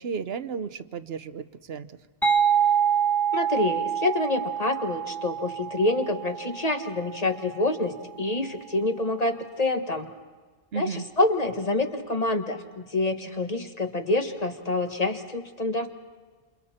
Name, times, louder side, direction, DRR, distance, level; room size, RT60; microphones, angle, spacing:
voice 1, 0.0-2.0 10.7-11.1, right 6 dB, 70° right, 12 dB, 1.1 m, -33 dB
sound 1, 2.2-7.7, right 8 dB, ahead, 1.6 m, -26 dB
voice 2, 3.3-10.1 10.7-15.9, left 2 dB, 35° left, 5 dB, 1.6 m, -27 dB
28.5 x 28.0 x 4.3 m, 1.4 s
omnidirectional pair, 1.1 m